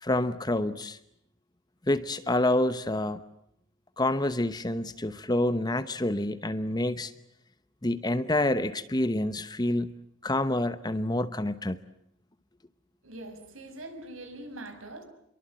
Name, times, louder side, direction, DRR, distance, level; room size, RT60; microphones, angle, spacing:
voice 1, 0.0-1.0 1.9-3.2 4.0-7.1 7.8-9.9 10.2-11.8, left 1 dB, 20° left, 12 dB, 1.0 m, -27 dB
voice 2, 13.0-15.0, right 1 dB, 80° right, 7 dB, 5.9 m, -43 dB
28.5 x 23.5 x 7.7 m, 0.77 s
head